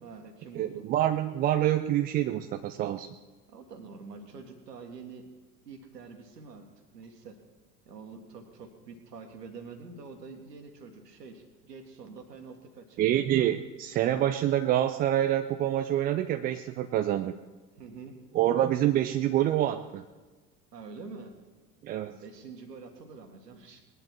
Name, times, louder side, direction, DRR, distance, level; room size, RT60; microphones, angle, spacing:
voice 1, 0.0-0.8 3.5-5.3 5.7-6.7 6.9-7.4 7.9-13.1 17.8-18.2 20.7-21.3 22.1-23.8, right 4 dB, 75° right, 5 dB, 1.9 m, -46 dB
voice 2, 0.5-3.1 13.0-17.3 18.3-20.0 21.8-22.1, right 12 dB, 20° right, 8 dB, 0.3 m, -26 dB
20.0 x 11.0 x 4.6 m, 1.3 s
figure-of-eight pair, 70°, 49 cm